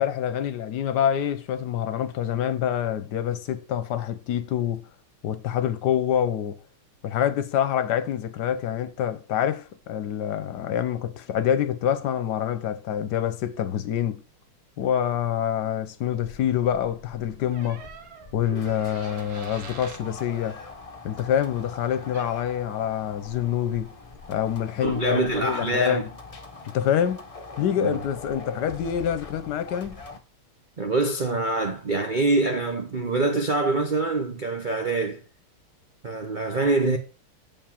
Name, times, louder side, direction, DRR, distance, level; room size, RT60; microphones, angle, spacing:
voice 1, 0.0-4.8 5.2-6.6 7.0-14.2 14.8-17.8 18.3-20.6 21.0-23.9 24.3-26.1 26.6-27.2 27.6-30.0, left 9 dB, 60° left, 1.2 m, -26 dB
sound 1, 16.2-30.2, left 3 dB, 30° left, 0.6 m, -43 dB
sound 2, 17.5-20.1 22.1-22.3, right 6 dB, 60° right, 1.9 m, -44 dB
voice 2, 24.8-26.0 27.8-28.0 30.8-35.2 36.0-37.0, right 2 dB, 85° right, 0.4 m, -25 dB
7.4 x 5.4 x 7.1 m
omnidirectional pair, 2.4 m